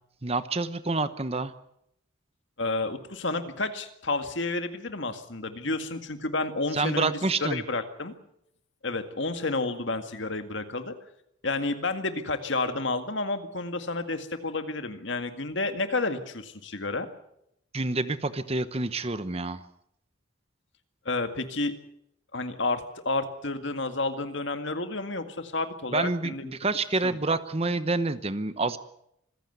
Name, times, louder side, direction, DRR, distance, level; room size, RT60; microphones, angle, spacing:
voice 1, 0.2-1.5 6.7-7.6 17.7-19.6 25.9-28.8, right 3 dB, 30° right, 13 dB, 0.9 m, -28 dB
voice 2, 2.6-7.1 7.4-8.1 8.8-10.9 11.4-17.1 21.1-21.7 22.3-26.5 27.0-27.2, left 3 dB, 60° left, 8 dB, 2.0 m, -30 dB
26.0 x 15.5 x 8.1 m, 0.78 s
head